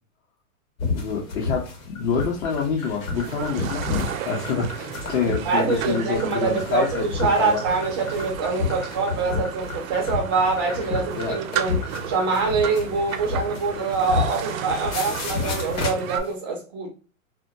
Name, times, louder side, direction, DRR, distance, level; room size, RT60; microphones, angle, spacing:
sound 1, 0.8-16.3, left 4 dB, 80° left, 1.1 m, -31 dB
voice 1, 0.9-7.6 11.1-11.3, left 5 dB, 55° left, 0.8 m, -27 dB
sound 2, 2.0-12.5, left 6 dB, 30° left, 1.0 m, -36 dB
sound 3, 3.1-16.2, right 9 dB, 75° right, 0.5 m, -34 dB
voice 2, 5.2-16.9, right 4 dB, 20° right, 0.3 m, -25 dB
2.2 x 2.1 x 2.6 m
hypercardioid pair, 140°, 41 cm